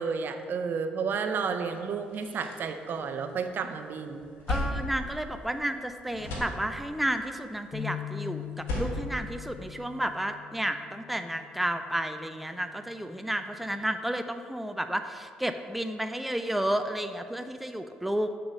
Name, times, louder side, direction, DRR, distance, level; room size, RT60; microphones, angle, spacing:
voice 1, 0.0-4.3, right 5 dB, 55° right, 7 dB, 0.5 m, -31 dB
sound 1, 1.5-1.6 1.9-3.6 4.0-5.8 6.1-7.1 8.4-10.1, left 1 dB, 70° left, 1.3 m, -36 dB
voice 2, 4.5-18.4, right 1 dB, 5° right, 7 dB, 0.4 m, -32 dB
sound 2, 7.7-14.0, left 11 dB, 45° left, 0.8 m, -43 dB
7.8 x 3.8 x 5.3 m, 2.1 s
hypercardioid pair, 50°, 4 cm